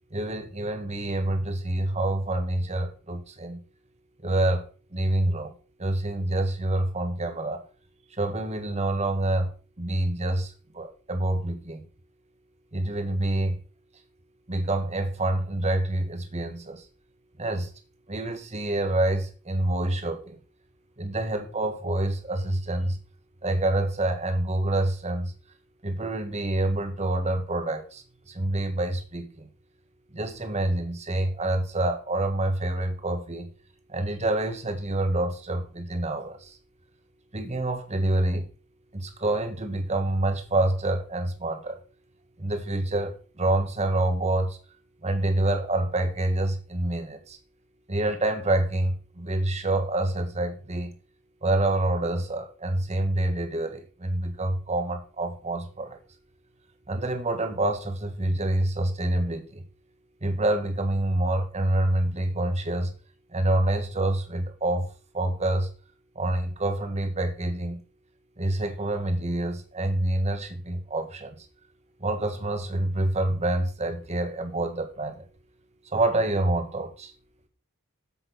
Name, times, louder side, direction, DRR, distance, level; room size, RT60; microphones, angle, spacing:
voice 1, 0.1-3.6 4.2-4.6 4.9-5.5 5.8-7.6 8.2-9.5 9.8-11.8 12.7-13.5 14.5-16.8 17.4-17.7 18.1-20.4 21.0-23.0 23.4-25.3 25.8-28.0 28.3-29.5 30.1-33.5 33.9-36.5 37.3-38.4 38.9-41.8 42.4-44.6 45.0-47.4 47.9-50.9 51.4-56.0 56.9-59.6 60.2-62.9 63.3-64.9 65.1-65.7 66.1-67.8 68.4-71.3 72.0-75.3 75.9-77.1, right 1 dB, 30° right, 6 dB, 1.5 m, -27 dB
7.7 x 6.2 x 6.1 m, 0.36 s
head